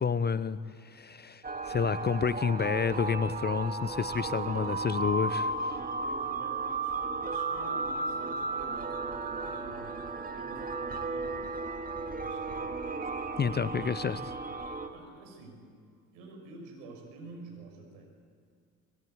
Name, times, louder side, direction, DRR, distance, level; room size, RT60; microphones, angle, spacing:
voice 1, 0.0-5.5 13.4-14.3, left 6 dB, 25° left, 16 dB, 0.8 m, -30 dB
sound 1, 1.4-14.9, right 3 dB, 20° right, 2.6 m, -34 dB
voice 2, 5.6-11.4 12.1-12.8 13.4-13.9 14.9-15.6 16.1-18.1, right 2 dB, 65° right, 2 dB, 6.8 m, -49 dB
25.0 x 21.5 x 9.7 m, 2.2 s
figure-of-eight pair, 55°, 42 cm